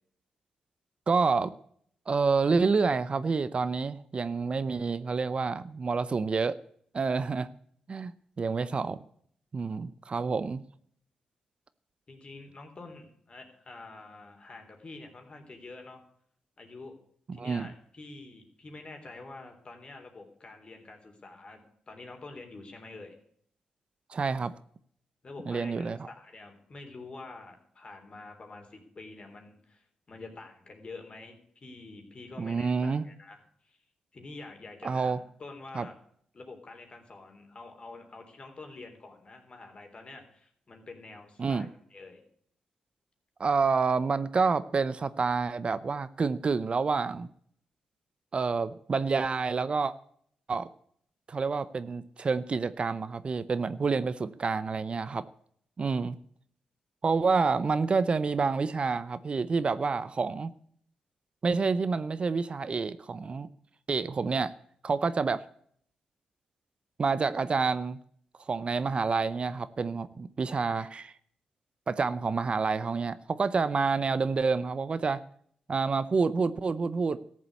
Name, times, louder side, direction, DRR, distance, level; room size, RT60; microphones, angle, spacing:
voice 1, 1.1-1.5 2.1-6.6 6.9-7.5 7.9-8.1 8.4-9.0 9.5-10.6 17.3-17.7 24.1-24.5 25.5-26.1 32.4-33.0 34.8-35.2 35.7-35.9 41.4-41.7 43.4-47.3 48.3-49.9 50.5-50.7 51.3-55.2 55.8-56.2 57.0-60.5 61.4-63.5 63.9-64.5 64.8-65.4 67.0-68.0 68.5-71.1 71.9-75.2 75.7-77.2, right 4 dB, 45° right, 15 dB, 0.7 m, -28 dB
voice 2, 12.1-16.0 16.6-17.0 17.3-23.2 25.2-33.8 34.1-36.0 36.3-42.2, left 3 dB, 40° left, 4 dB, 3.5 m, -47 dB
13.5 x 7.4 x 8.3 m, 0.64 s
cardioid pair, 65°, 3 cm